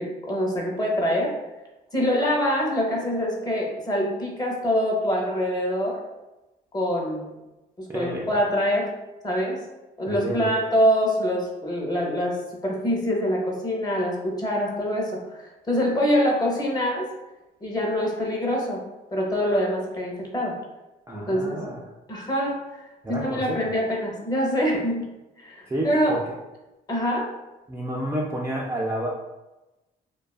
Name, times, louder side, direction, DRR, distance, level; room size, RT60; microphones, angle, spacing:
voice 1, 0.0-1.3 1.9-6.0 6.7-7.3 7.8-8.9 9.2-9.6 10.0-17.1 17.6-18.8 19.1-20.6 21.1-21.6 22.1-25.1 25.4-26.2 26.9-27.3, equal, 20° left, -2 dB, 0.7 m, -25 dB
voice 2, 7.9-8.3 10.0-10.5 21.1-21.8 23.0-23.7 25.7-26.3 27.7-29.1, right 1 dB, 15° right, -3 dB, 0.3 m, -30 dB
2.5 x 2.3 x 2.3 m, 1.0 s
cardioid pair, 90°, 20 cm